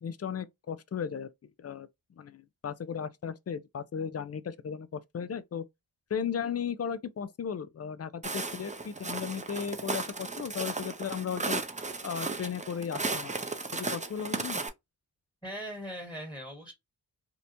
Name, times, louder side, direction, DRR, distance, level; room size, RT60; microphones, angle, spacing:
voice 1, 0.0-1.3 1.6-1.9 2.2-5.6 6.1-11.6 12.0-13.3 13.7-14.6, left 7 dB, 40° left, 0.4 m, -36 dB
Walk footsteps, 8.2-14.7, right 3 dB, 20° right, 0.5 m, -35 dB
voice 2, 15.4-16.7, equal, 10° left, 1.4 m, -40 dB
2.8 x 2.1 x 2.5 m
cardioid pair, 45°, 42 cm